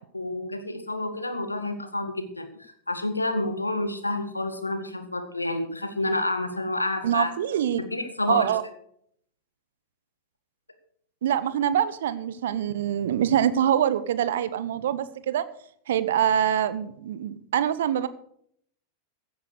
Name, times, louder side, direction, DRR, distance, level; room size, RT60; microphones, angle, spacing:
voice 1, 0.1-7.3 7.8-8.5, left 2 dB, 85° left, 8 dB, 1.7 m, -29 dB
voice 2, 7.0-7.8 8.3-8.6 11.2-15.4 15.9-18.1, right 10 dB, 60° right, 15 dB, 0.8 m, -24 dB
15.5 x 7.9 x 6.6 m, 0.67 s
figure-of-eight pair, 90°, 0 cm